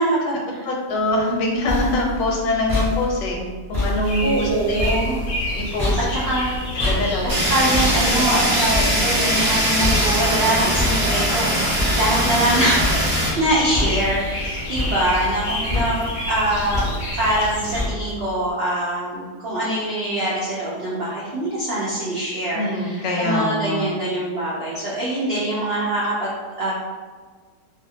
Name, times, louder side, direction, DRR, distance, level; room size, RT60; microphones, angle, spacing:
voice 1, 0.0-0.7 4.2-5.2 6.1-6.6 7.4-16.8 17.1-26.7, right 1 dB, 85° right, -7 dB, 0.5 m, -23 dB
voice 2, 0.6-3.4 3.7-4.8 5.5-6.0 6.8-7.5 22.5-23.9, left 1 dB, 80° left, 0 dB, 1.3 m, -23 dB
sound 1, 1.3-12.5 12.8-13.4 13.7-14.4 14.7-15.4 15.7-16.2 16.7-17.3 17.7-18.3, left 1 dB, ahead, 0.8 m, -27 dB
sound 2, 4.0-17.9, left 1 dB, 60° left, 0.7 m, -30 dB
Fire, 7.3-13.3, equal, 45° right, 0.6 m, -21 dB
2.7 x 2.4 x 2.7 m, 1.4 s
omnidirectional pair, 1.8 m